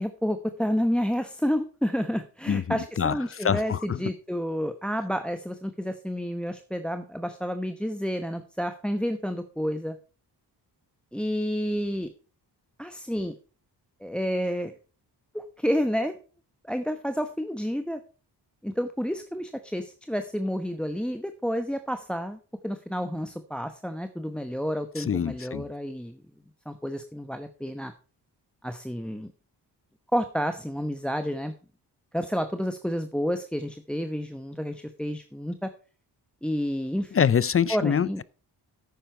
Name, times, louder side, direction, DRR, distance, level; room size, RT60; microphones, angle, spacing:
voice 1, 0.0-10.0 11.1-12.1 12.8-13.3 14.0-14.7 15.3-16.2 16.6-18.0 18.6-26.2 26.7-27.9 28.6-29.3 30.1-31.5 32.1-35.7 36.4-37.3 37.7-38.2, equal, ahead, 1.0 m, -30 dB
voice 2, 2.5-4.0 25.0-25.7 37.1-38.2, left 7 dB, 35° left, 0.5 m, -25 dB
10.5 x 8.8 x 4.5 m
cardioid pair, 65°, 41 cm